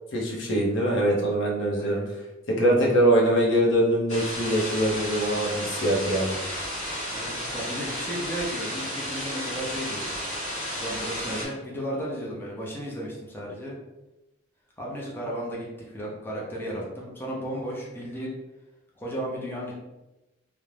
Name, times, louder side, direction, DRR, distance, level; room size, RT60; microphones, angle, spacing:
voice 1, 0.1-2.0 2.5-6.3, right 1 dB, 75° left, -2 dB, 0.7 m, -23 dB
sound 1, 4.1-11.4, equal, 35° left, 1.1 m, -33 dB
voice 2, 7.1-10.0 10.8-13.8 14.8-18.3 19.0-19.7, equal, 10° left, -4 dB, 0.5 m, -34 dB
2.5 x 2.1 x 3.2 m, 1.0 s
head